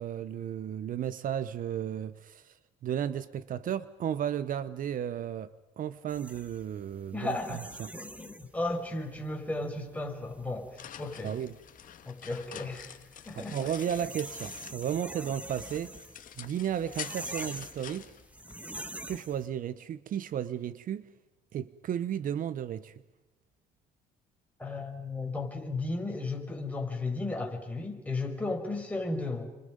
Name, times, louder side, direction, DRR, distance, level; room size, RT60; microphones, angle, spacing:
voice 1, 0.0-2.6 2.8-7.9 11.2-11.6 13.4-15.9 16.4-18.1 19.1-21.1 21.5-22.9, right 9 dB, 55° right, 0.9 m, -34 dB
sound 1, 6.1-19.5, right 1 dB, 10° right, 1.6 m, -45 dB
voice 2, 7.1-7.6 7.9-11.4 12.1-13.0 13.3-13.7 24.6-29.5, left 2 dB, 10° left, 5.7 m, -34 dB
sound 2, 10.3-15.1 15.4-19.0, left 10 dB, 55° left, 1.6 m, -47 dB
30.0 x 26.5 x 5.3 m
cardioid pair, 110°, 17 cm